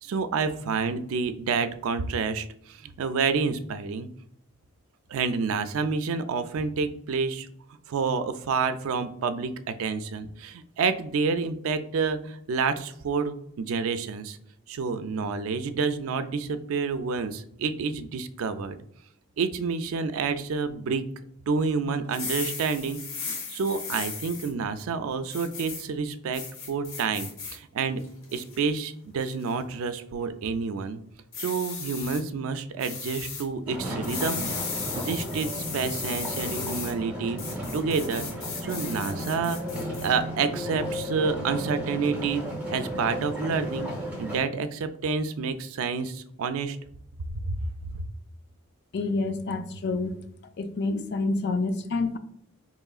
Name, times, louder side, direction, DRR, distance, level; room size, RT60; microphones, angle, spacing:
voice 1, 0.0-4.1 5.1-7.5 7.9-14.4 14.7-18.8 19.4-21.0 21.5-28.0 28.3-31.0 31.4-34.4 34.7-37.4 37.7-38.3 38.6-39.6 40.0-42.4 42.7-43.9 44.2-46.8 47.5-47.6 47.9-48.0, right 5 dB, 75° right, 11 dB, 0.4 m, -29 dB
sound 1, 22.0-24.5 25.3-25.8 26.3-27.6 28.0-28.6 29.2-29.5 31.3-32.2 32.8-33.4 34.0-36.9 37.4-40.1, left 5 dB, 65° left, 1.0 m, -36 dB
sound 2, 33.7-44.4, equal, 5° right, 0.9 m, -34 dB
voice 2, 48.9-50.2 50.6-52.2, left 3 dB, 50° left, 9 dB, 0.4 m, -28 dB
4.7 x 3.0 x 2.4 m, 0.71 s
head